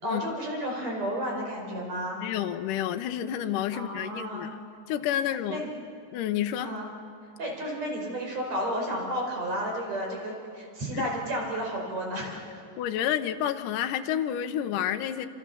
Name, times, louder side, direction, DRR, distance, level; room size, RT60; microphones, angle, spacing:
voice 1, 0.0-2.2 3.7-4.5 5.5-5.7 6.6-6.9 7.4-12.6, equal, 40° right, 0 dB, 5.8 m, -32 dB
voice 2, 2.2-4.6 4.9-5.6 6.1-6.7 10.9-11.1 12.8-15.3, left 10 dB, 75° left, 7 dB, 2.1 m, -29 dB
27.5 x 27.5 x 7.1 m, 2.4 s
omnidirectional pair, 4.8 m